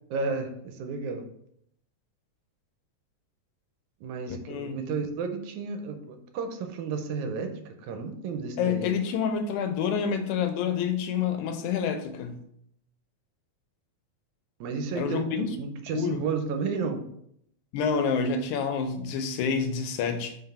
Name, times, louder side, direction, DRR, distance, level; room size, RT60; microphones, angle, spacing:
voice 1, 0.1-1.3 4.0-8.9 14.6-17.0, right 5 dB, 90° right, 6 dB, 2.1 m, -32 dB
voice 2, 4.3-4.8 8.6-12.4 15.0-15.5 15.9-16.2 17.7-20.4, left 6 dB, 90° left, 8 dB, 2.1 m, -28 dB
4.8 x 4.0 x 5.5 m, 0.73 s
omnidirectional pair, 3.3 m